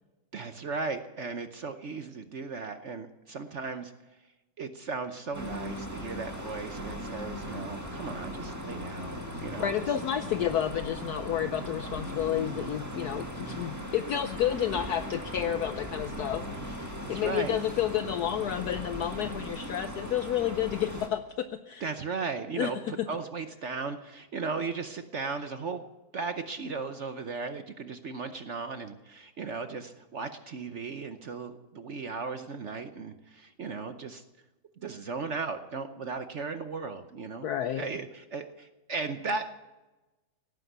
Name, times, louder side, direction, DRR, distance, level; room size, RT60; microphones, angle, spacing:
voice 1, 0.3-3.9 4.6-9.9 17.1-17.6 21.8-25.8 26.1-34.2 34.8-37.5 37.8-39.5, right 4 dB, 50° right, 8 dB, 0.9 m, -36 dB
sound 1, 5.3-21.1, equal, 10° right, 1.7 m, -38 dB
voice 2, 9.6-21.9 22.6-22.7 23.0-23.1 37.4-37.9, left 10 dB, 65° left, 10 dB, 1.1 m, -30 dB
17.5 x 9.7 x 8.0 m, 1.1 s
omnidirectional pair, 2.0 m